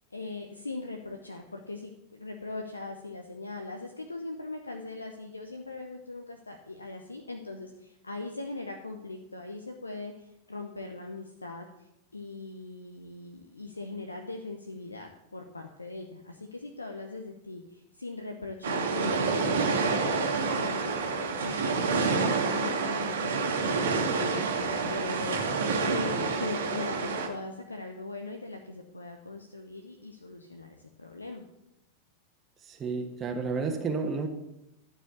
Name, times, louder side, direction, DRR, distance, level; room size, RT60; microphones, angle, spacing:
voice 1, 0.1-25.4 25.8-31.5, left 3 dB, 80° left, 3 dB, 0.8 m, -40 dB
sound 1, 18.6-27.3, right 4 dB, 65° right, 1.6 m, -28 dB
voice 2, 32.6-34.3, right 4 dB, 25° right, 3 dB, 1.3 m, -31 dB
11.5 x 5.0 x 7.9 m, 0.85 s
figure-of-eight pair, 90°, 0 cm